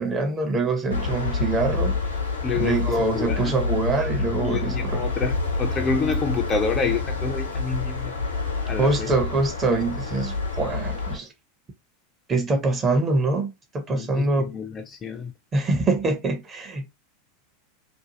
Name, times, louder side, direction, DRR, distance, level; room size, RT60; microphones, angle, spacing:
voice 1, 0.0-2.0 2.6-5.0 8.8-11.3 12.3-14.6 15.5-16.8, right 3 dB, 25° right, 0.7 m, -24 dB
sound 1, 0.9-11.2, left 3 dB, 80° left, 0.9 m, -28 dB
voice 2, 2.4-3.6 4.4-8.2 8.6-9.1 13.9-15.3, left 5 dB, 25° left, 0.5 m, -28 dB
2.6 x 2.3 x 2.8 m
figure-of-eight pair, 85°, 0 cm